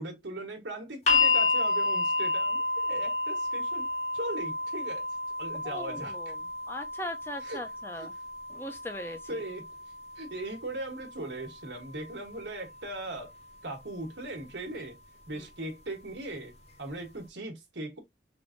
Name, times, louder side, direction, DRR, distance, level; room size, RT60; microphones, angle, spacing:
voice 1, 0.0-3.8 4.1-5.0 5.4-6.1 7.4-7.6 8.0-8.1 9.3-9.7 10.2-13.3 13.6-15.0 15.3-16.5 16.8-18.0, right 2 dB, 85° right, 1.2 m, -39 dB
sound 1, 1.1-13.1 14.2-14.3, left 3 dB, 40° left, 0.7 m, -31 dB
voice 2, 5.6-8.1 8.6-9.4 15.3-15.5, left 1 dB, 15° left, 0.4 m, -40 dB
3.5 x 2.6 x 2.4 m
head